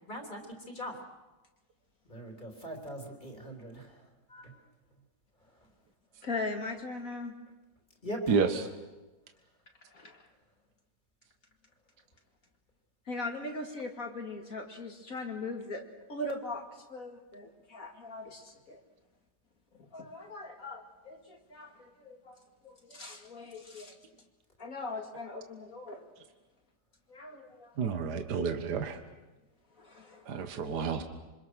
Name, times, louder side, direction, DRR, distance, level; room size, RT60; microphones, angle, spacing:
voice 1, 0.1-0.4 0.7-0.9 2.1-4.5 8.0-8.5, equal, 25° left, 1 dB, 3.6 m, -41 dB
voice 2, 6.2-7.4 9.9-10.3 13.1-15.8 16.1-18.8 19.7-24.0 24.6-26.1 27.1-28.0 29.7-30.3, left 2 dB, 50° left, 2 dB, 2.7 m, -40 dB
voice 3, 27.8-29.0 30.3-31.0, right 5 dB, 65° right, 6 dB, 1.9 m, -29 dB
27.0 x 25.0 x 6.3 m, 1.1 s
omnidirectional pair, 2.0 m